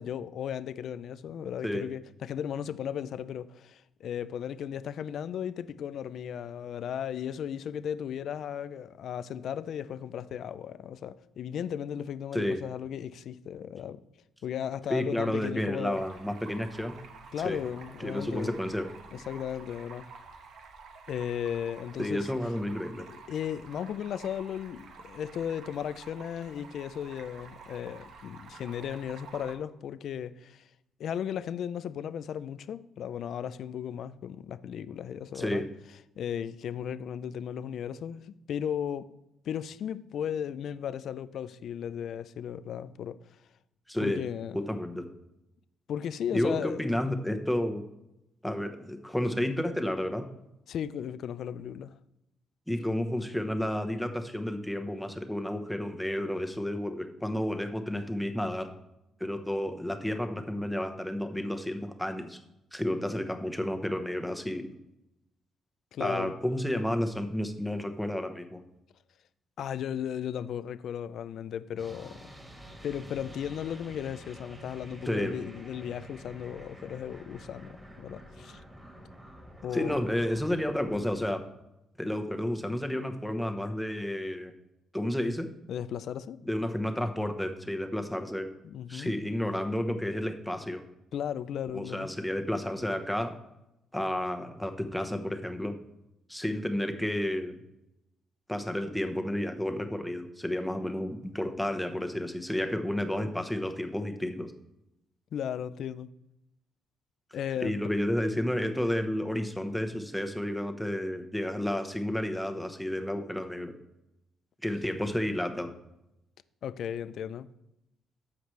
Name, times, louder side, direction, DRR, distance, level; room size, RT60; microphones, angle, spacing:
voice 1, 0.0-14.0 14.4-16.0 17.3-18.6 19.1-20.1 21.1-22.3 23.0-30.7 31.0-35.6 36.2-39.1 39.4-43.2 44.0-44.6 45.9-46.9 50.7-51.9 65.9-66.3 69.6-72.3 72.8-78.6 79.6-80.0 85.7-86.4 88.6-89.1 91.1-92.1 105.3-106.1 107.3-107.8 116.6-117.5, left 9 dB, 70° left, 0.4 m, -36 dB
voice 2, 14.9-17.0 17.4-17.6 18.0-18.9 22.0-23.1 35.3-35.7 43.9-44.2 44.5-45.0 46.3-47.8 48.4-50.3 52.7-58.7 59.2-62.4 62.7-64.7 66.0-68.6 75.1-75.3 79.7-81.4 82.0-84.5 84.9-85.5 86.4-88.5 88.9-90.8 91.7-93.4 93.9-95.8 96.3-97.6 98.5-104.5 107.6-113.7 114.6-115.7, left 1 dB, 5° left, 1.0 m, -31 dB
Stream, 15.9-29.5, right 4 dB, 75° right, 1.1 m, -50 dB
sound 1, 71.8-81.2, equal, 15° right, 2.3 m, -49 dB
14.0 x 5.0 x 3.2 m
cardioid pair, 90°, 0 cm